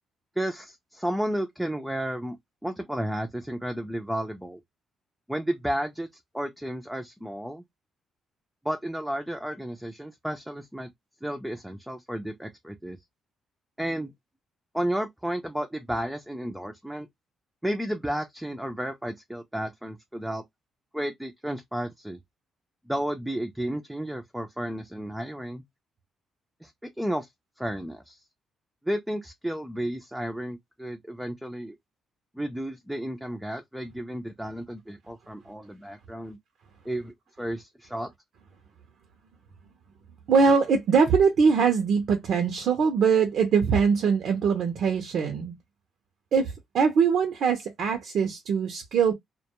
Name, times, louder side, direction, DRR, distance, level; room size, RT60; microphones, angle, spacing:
voice 1, 0.4-2.4 2.6-4.6 5.3-6.1 6.3-7.6 8.6-10.9 11.2-13.0 13.8-14.1 14.7-17.1 17.6-20.4 20.9-22.2 22.9-25.6 26.6-26.7 27.0-27.3 27.6-28.2 28.8-31.8 32.3-36.4 36.8-38.1, equal, 5° right, 0.4 m, -32 dB
voice 2, 40.3-45.5 46.3-49.1, right 5 dB, 70° right, 0.5 m, -22 dB
2.2 x 2.1 x 2.8 m
cardioid pair, 90°, 0 cm